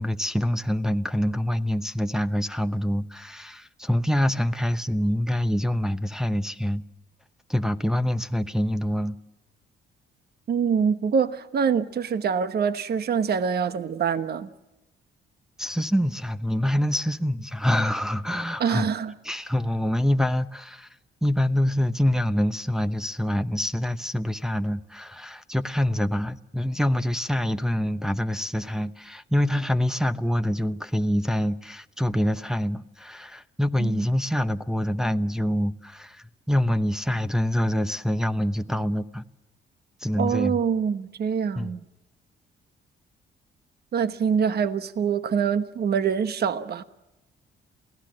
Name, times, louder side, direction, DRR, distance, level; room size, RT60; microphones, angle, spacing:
voice 1, 0.0-6.8 7.5-9.2 15.6-18.9 19.2-20.9 21.2-39.2 40.0-40.6 41.6-41.8, equal, 5° right, 0.8 m, -25 dB
voice 2, 10.5-14.5 18.6-19.1 33.8-34.1 40.2-41.8 43.9-46.8, right 7 dB, 55° right, 1.1 m, -25 dB
28.0 x 17.0 x 7.7 m
cardioid pair, 90°, 20 cm